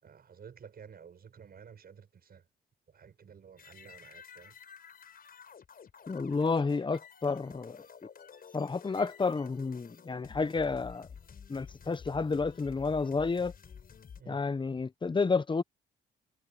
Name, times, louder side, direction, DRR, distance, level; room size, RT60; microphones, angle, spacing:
voice 1, 0.0-2.4 2.9-4.5 14.2-14.4, right 7 dB, 50° right, 6.2 m, -52 dB
sound 1, 3.6-14.2, left 7 dB, 50° left, 5.6 m, -51 dB
voice 2, 6.1-7.8 8.5-11.1 11.5-13.5 14.3-15.6, left 4 dB, 25° left, 1.0 m, -30 dB
cardioid pair, 90°, 20 cm